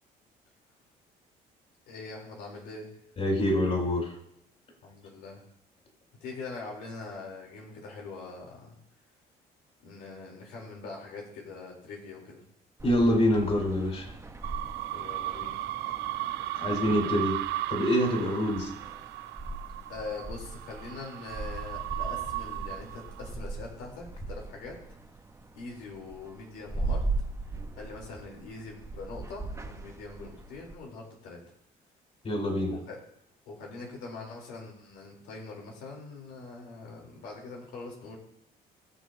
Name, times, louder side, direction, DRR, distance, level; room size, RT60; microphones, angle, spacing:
voice 1, 1.9-2.9 4.8-5.4 6.2-8.8 9.8-12.4 14.9-15.6 19.9-24.8 25.6-27.1 27.8-31.4 32.7-33.0 33.5-38.2, left 3 dB, 90° left, -1 dB, 3.7 m, -43 dB
voice 2, 3.2-4.1 12.8-14.1 16.5-17.4 17.7-18.7 32.2-32.7, equal, 40° left, 0 dB, 4.9 m, -25 dB
sound 1, 12.8-30.8, right 2 dB, 15° right, 1.0 m, -39 dB
sound 2, 14.4-23.3, right 16 dB, 80° right, 0.4 m, -36 dB
20.5 x 7.2 x 2.8 m, 0.75 s
cardioid pair, 110°, 17 cm